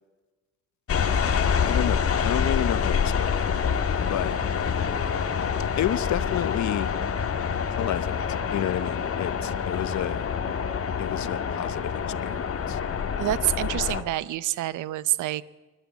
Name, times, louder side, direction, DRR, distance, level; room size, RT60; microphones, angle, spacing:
sound 1, 0.9-14.0, left 6 dB, 50° left, 1.9 m, -26 dB
voice 1, 1.6-3.5 4.1-4.3 5.8-6.9 7.8-8.2 8.5-10.3 11.0-12.8, left 12 dB, 70° left, 16 dB, 1.0 m, -30 dB
voice 2, 13.2-15.4, right 15 dB, 85° right, 18 dB, 0.8 m, -27 dB
25.0 x 12.5 x 8.4 m, 1.2 s
cardioid pair, 90°, 30 cm